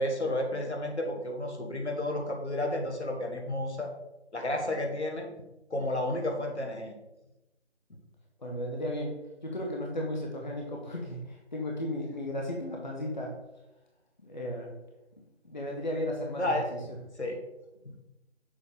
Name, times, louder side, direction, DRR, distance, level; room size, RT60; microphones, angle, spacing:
voice 1, 0.0-3.9 4.3-5.3 5.7-6.9 16.4-16.7 17.2-17.4, left 1 dB, 75° left, 2 dB, 1.4 m, -31 dB
voice 2, 8.4-9.2 9.4-13.3 14.2-14.7 15.4-16.8, left 1 dB, 40° left, 0 dB, 0.9 m, -35 dB
7.0 x 3.9 x 3.5 m, 0.96 s
figure-of-eight pair, 165°, 34 cm